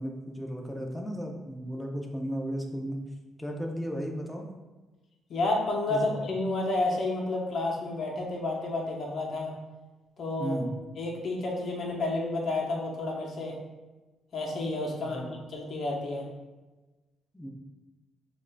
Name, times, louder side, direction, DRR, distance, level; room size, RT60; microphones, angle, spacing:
voice 1, 0.0-3.0 3.4-4.4 5.9-6.0 10.4-10.7 15.0-15.3 17.3-17.5, equal, 10° left, 1 dB, 0.6 m, -34 dB
voice 2, 5.3-9.5 10.2-10.6 11.0-13.6 14.3-16.2, left 2 dB, 60° left, -1 dB, 0.9 m, -30 dB
6.3 x 2.6 x 2.3 m, 1.2 s
cardioid pair, 90°, 0 cm